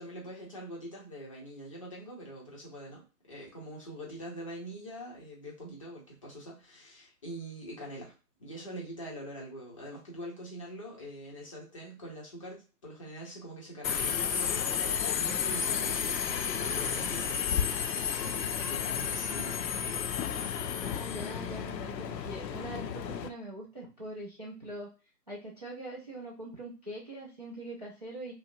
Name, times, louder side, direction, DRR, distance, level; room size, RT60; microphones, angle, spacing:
voice 1, 0.0-8.1 8.4-19.7 19.9-20.5, equal, 20° left, -4 dB, 0.6 m, -44 dB
Subway metro underground, 13.8-23.3, left 7 dB, 90° left, 0.6 m, -32 dB
voice 2, 20.8-24.9 25.3-28.3, right 1 dB, 25° right, -4 dB, 0.4 m, -43 dB
4.8 x 2.0 x 2.5 m, 0.33 s
hypercardioid pair, 150°, 49 cm